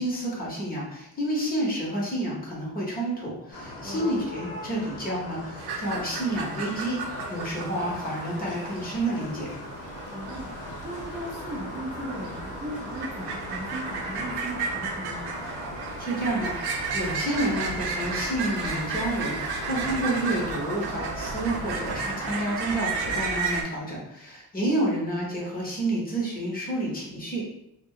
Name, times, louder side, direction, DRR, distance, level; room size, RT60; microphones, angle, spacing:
voice 1, 0.0-7.0 7.3-9.5 16.0-27.5, right 1 dB, 25° left, -5 dB, 0.9 m, -29 dB
sound 1, 3.5-22.5, left 1 dB, 75° left, 0.8 m, -39 dB
sound 2, 5.6-23.6, right 4 dB, 80° right, 0.6 m, -33 dB
voice 2, 10.1-10.5 10.8-15.3 24.7-25.0, right 1 dB, 15° right, -8 dB, 0.7 m, -37 dB
2.3 x 2.2 x 3.6 m, 0.80 s
cardioid pair, 120°, 38 cm